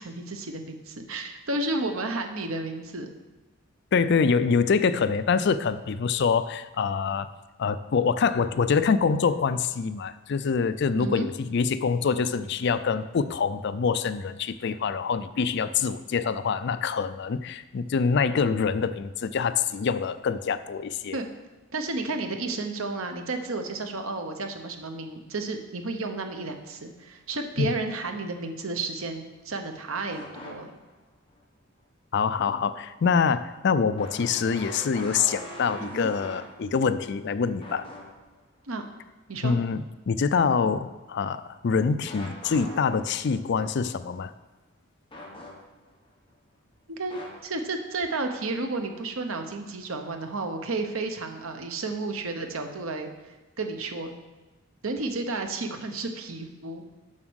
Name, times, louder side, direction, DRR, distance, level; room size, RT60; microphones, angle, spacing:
voice 1, 0.0-3.1 11.0-11.3 21.1-21.3 21.7-30.7 35.8-36.1 38.6-38.9 39.3-39.6 46.9-54.2 54.8-56.9, right 3 dB, 85° right, 6 dB, 1.0 m, -32 dB
voice 2, 3.9-7.3 7.6-21.2 27.6-27.7 32.1-37.9 39.4-44.3, left 5 dB, 55° left, 13 dB, 0.4 m, -25 dB
sound 1, 30.1-31.0 31.4-31.5 34.0-37.2 37.6-38.4 42.1-43.6 45.1-45.9 47.1-47.4, left 1 dB, 25° left, 1.4 m, -42 dB
7.4 x 6.0 x 6.3 m, 1.2 s
head